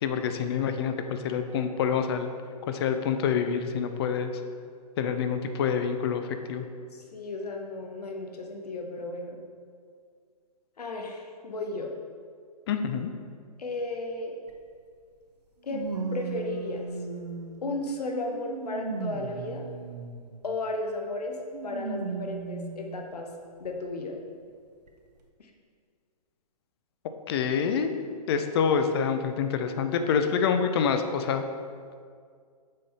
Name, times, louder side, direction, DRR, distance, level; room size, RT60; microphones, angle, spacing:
voice 1, 0.0-2.3 2.7-4.3 5.0-6.7 12.7-13.1 27.3-27.9 28.3-31.4, left 7 dB, 40° left, 8 dB, 0.5 m, -27 dB
voice 2, 6.9-9.4 10.8-11.9 13.6-14.3 15.6-16.9 17.6-19.6 20.4-21.4 21.6-23.3 23.6-24.2 25.4-25.5, left 2 dB, 75° left, 2 dB, 0.9 m, -34 dB
sound 1, 14.5-14.6 15.7-17.7 18.3-20.3 21.5-22.9 23.6-23.7 24.9-25.0, right 4 dB, 80° right, 0.7 m, -36 dB
6.4 x 4.0 x 4.2 m, 2.1 s
figure-of-eight pair, 125°, 20 cm